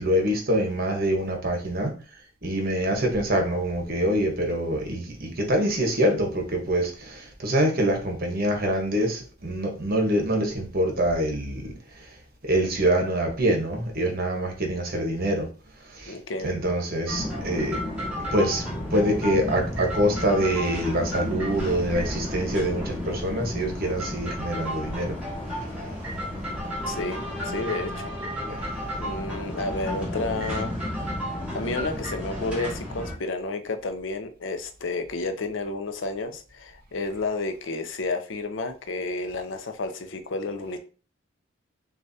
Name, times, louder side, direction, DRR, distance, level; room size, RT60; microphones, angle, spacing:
voice 1, 0.0-1.9 2.4-11.7 12.4-15.5 15.9-16.1 16.4-17.8 18.3-18.6 18.9-25.2 28.5-28.6, right 1 dB, 50° right, 1.1 m, -25 dB
voice 2, 16.1-16.5 26.9-28.1 28.9-30.8 31.3-40.8, left 3 dB, 75° left, 0.6 m, -31 dB
sound 1, 17.1-33.1, equal, 5° right, 1.8 m, -32 dB
6.4 x 2.5 x 2.8 m
head